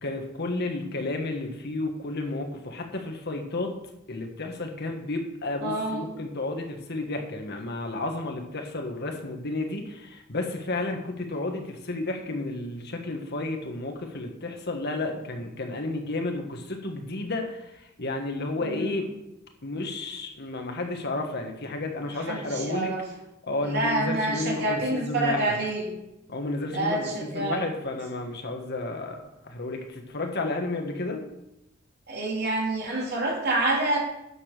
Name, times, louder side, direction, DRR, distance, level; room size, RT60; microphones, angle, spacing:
voice 1, 0.0-3.8 4.1-19.1 19.6-22.9 23.4-25.5 26.3-31.2, left 2 dB, 55° left, 3 dB, 1.6 m, -32 dB
voice 2, 5.6-6.0 18.6-19.0 22.0-23.0 23.6-25.9 26.7-27.6 32.1-34.0, right 2 dB, 55° right, -2 dB, 3.3 m, -27 dB
9.7 x 7.0 x 6.8 m, 0.88 s
head